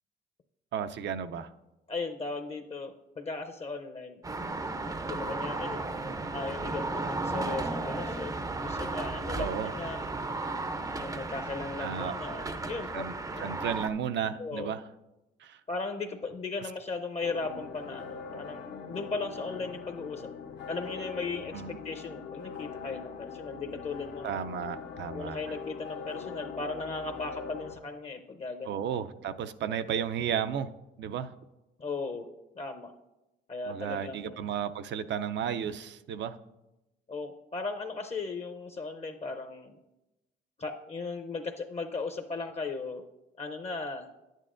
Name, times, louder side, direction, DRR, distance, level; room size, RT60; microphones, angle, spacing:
voice 1, 0.7-1.5 9.4-9.7 11.8-12.2 12.9-13.1 13.4-14.8 15.4-15.6 21.5-21.8 24.2-25.4 28.7-30.7 31.0-31.3 33.7-36.4, right 8 dB, 65° right, 11 dB, 0.5 m, -33 dB
voice 2, 1.9-4.2 5.1-5.9 6.3-10.0 11.0-13.0 13.3-13.7 14.4-14.7 15.7-20.3 20.7-24.4 25.1-28.9 31.8-32.3 32.6-32.9 33.5-34.5 37.1-39.8 40.6-43.0 43.4-44.1, left 3 dB, 30° left, 6 dB, 0.6 m, -37 dB
sound 1, 4.2-13.9, right 2 dB, 15° right, 0.5 m, -34 dB
sound 2, 17.2-27.8, left 6 dB, 65° left, 0.8 m, -42 dB
10.5 x 9.1 x 2.5 m, 0.97 s
cardioid pair, 90°, 20 cm